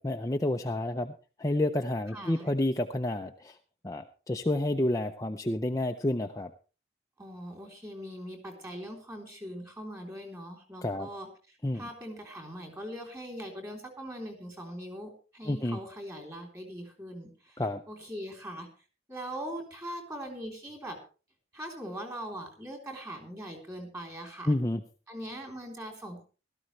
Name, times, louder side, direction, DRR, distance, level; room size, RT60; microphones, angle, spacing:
voice 1, 0.0-3.6 3.8-6.5 10.8-11.1 11.6-11.9 15.4-15.8 17.6-17.8 24.5-24.8, left 1 dB, 20° left, 4 dB, 0.5 m, -30 dB
voice 2, 2.1-2.5 7.2-18.7 19.1-21.0 21.5-24.5 25.1-26.2, equal, 15° right, 3 dB, 3.3 m, -41 dB
17.0 x 13.0 x 3.2 m, 0.35 s
head